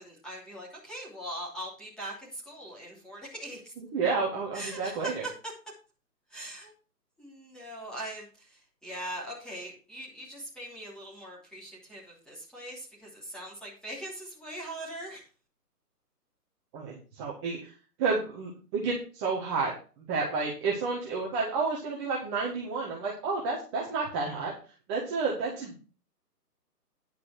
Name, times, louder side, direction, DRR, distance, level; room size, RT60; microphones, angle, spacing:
voice 1, 0.0-3.7 4.5-5.5 6.3-6.7 7.2-15.3, right 1 dB, ahead, -6 dB, 3.1 m, -41 dB
voice 2, 3.8-5.2 16.7-17.7 18.0-19.7 20.1-24.5 24.9-25.7, right 4 dB, 15° right, -3 dB, 1.7 m, -30 dB
10.5 x 6.0 x 5.9 m, 0.36 s
hypercardioid pair, 150°, 48 cm